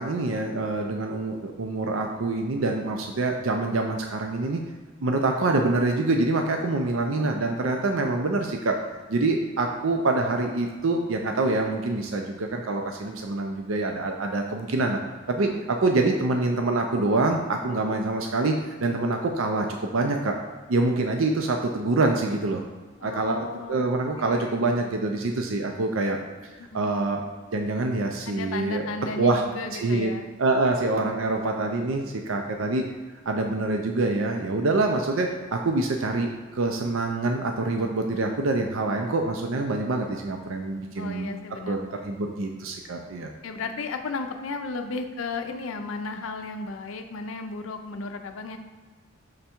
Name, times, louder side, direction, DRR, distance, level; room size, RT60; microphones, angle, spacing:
voice 1, 0.0-4.6 5.0-8.8 9.1-15.0 15.3-20.4 20.7-22.6 23.0-26.2 26.7-27.2 27.5-28.8 29.2-29.4 29.7-30.1 30.4-32.9 33.3-41.3 41.6-43.3, right 2 dB, 85° right, 3 dB, 0.6 m, -25 dB
voice 2, 23.0-23.8 24.2-24.9 26.6-27.1 28.3-30.3 40.9-42.1 43.2-48.6, left 3 dB, 85° left, 6 dB, 0.5 m, -35 dB
6.5 x 3.5 x 4.4 m, 1.4 s
head